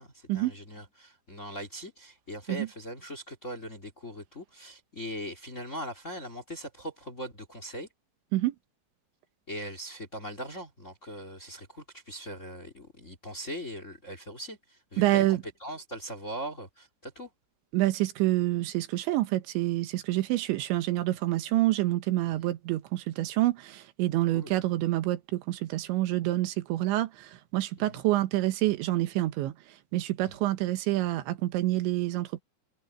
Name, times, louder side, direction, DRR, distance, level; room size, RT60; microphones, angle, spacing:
voice 1, 0.0-7.9 9.5-17.3 22.2-22.5 24.3-24.5 27.8-28.0 30.2-30.4, equal, 20° left, 2.4 m, -40 dB
voice 2, 15.0-15.4 17.7-32.4, right 16 dB, 80° right, 3.4 m, -27 dB
omnidirectional pair, 5.3 m